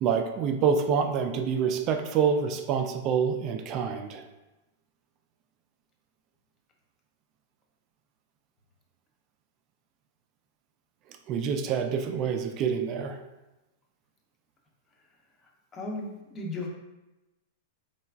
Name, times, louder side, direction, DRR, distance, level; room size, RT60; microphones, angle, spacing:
voice 1, 0.0-4.2 11.3-13.2, right 6 dB, 40° right, 6 dB, 0.3 m, -27 dB
voice 2, 15.7-16.7, left 2 dB, 25° left, 0 dB, 0.5 m, -35 dB
3.0 x 2.3 x 2.3 m, 1.0 s
hypercardioid pair, 120°, 0 cm